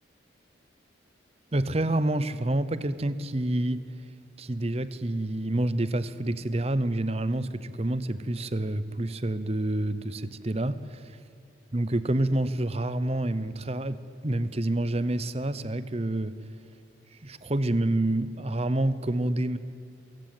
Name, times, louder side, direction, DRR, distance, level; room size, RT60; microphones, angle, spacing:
voice 1, 1.5-3.8 4.4-11.2 11.7-16.4 17.2-19.6, right 1 dB, 30° right, 14 dB, 0.8 m, -28 dB
23.0 x 15.5 x 9.1 m, 2.5 s
head